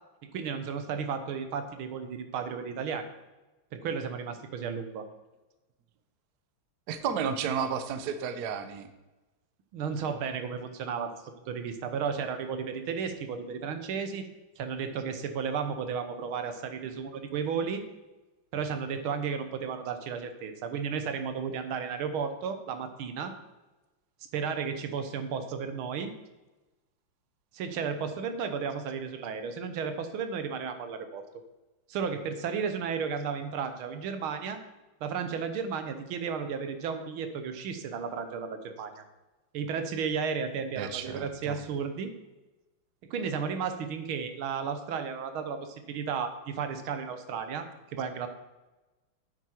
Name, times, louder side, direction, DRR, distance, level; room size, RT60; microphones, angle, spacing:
voice 1, 0.3-3.1 3.7-5.1 9.7-11.1 11.5-14.2 14.6-17.8 18.5-23.3 24.3-26.1 27.5-31.2 31.9-34.6 35.0-39.0 39.5-42.1 43.1-48.3, right 6 dB, 80° right, 8 dB, 1.8 m, -33 dB
voice 2, 6.9-8.9 40.8-41.6, right 7 dB, 60° right, 10 dB, 1.2 m, -32 dB
9.6 x 7.9 x 4.4 m, 1.1 s
omnidirectional pair, 2.3 m